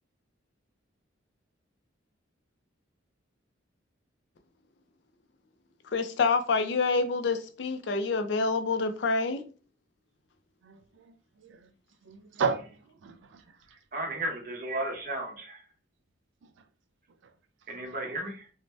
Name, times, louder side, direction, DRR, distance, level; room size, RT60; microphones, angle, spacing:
voice 1, 5.9-9.4, left 4 dB, 60° left, 0.4 m, -27 dB
voice 2, 10.6-11.7 12.0-13.8 16.4-16.5 17.2-17.3, right 5 dB, 70° right, 0.3 m, -35 dB
voice 3, 13.7-15.7 17.7-18.5, right 1 dB, 45° right, 0.8 m, -34 dB
2.6 x 2.1 x 3.1 m
head